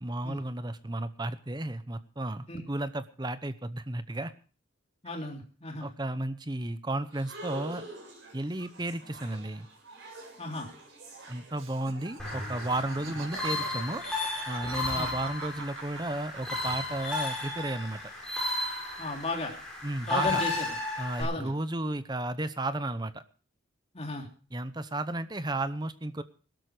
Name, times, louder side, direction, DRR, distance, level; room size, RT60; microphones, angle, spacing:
voice 1, 0.0-4.3 5.8-7.8 8.3-9.7 11.3-14.0 14.5-18.0 19.8-20.4 21.0-23.2 24.5-26.2, right 2 dB, 20° right, 12 dB, 0.8 m, -33 dB
voice 2, 5.0-5.9 10.4-10.7 13.0-13.1 14.9-15.1 19.0-19.5 20.1-20.7 21.2-21.5 23.9-24.3, left 2 dB, 30° left, 2 dB, 3.3 m, -34 dB
sound 1, 7.1-14.0, right 2 dB, 55° right, 7.2 m, -47 dB
Laughter, 11.5-17.3 17.6-18.4, right 5 dB, 75° right, 1.9 m, -45 dB
sound 2, 12.2-21.2, left 3 dB, 5° left, 6.3 m, -34 dB
17.0 x 12.5 x 4.9 m, 0.40 s
head